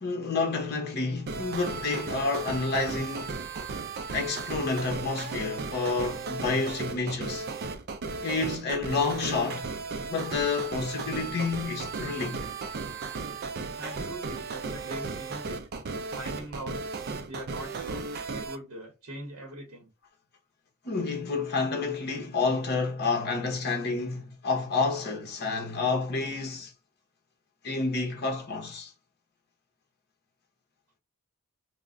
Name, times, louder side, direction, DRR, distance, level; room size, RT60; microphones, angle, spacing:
voice 1, 0.0-3.4 4.1-7.5 8.2-9.7 10.1-12.4 20.8-26.7 27.6-28.9, left 4 dB, 45° left, 0.8 m, -29 dB
sound 1, 1.3-18.6, right 4 dB, 45° right, 0.4 m, -35 dB
voice 2, 13.8-15.6 16.1-16.9 17.3-19.9, right 1 dB, 70° right, 0.8 m, -41 dB
2.4 x 2.1 x 3.6 m
head